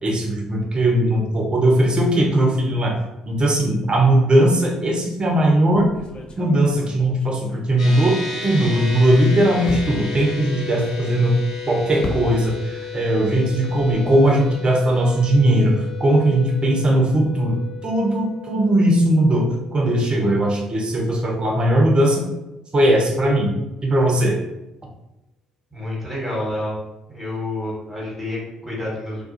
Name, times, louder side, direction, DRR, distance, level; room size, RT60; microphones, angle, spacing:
voice 1, 0.0-3.0 3.3-5.9 6.4-11.3 11.7-19.5 19.7-22.2 22.7-23.5 23.8-24.4, right 1 dB, 35° right, 0 dB, 0.7 m, -18 dB
sound 1, 5.7-8.4 8.7-12.8 13.1-14.4, left 3 dB, 35° left, 0.5 m, -36 dB
sound 2, 7.8-21.4, left 5 dB, 85° left, 0.6 m, -34 dB
voice 2, 25.7-26.8 27.1-29.2, left 1 dB, 10° right, -6 dB, 1.2 m, -28 dB
2.3 x 2.3 x 2.7 m, 0.93 s
figure-of-eight pair, 45°, 3 cm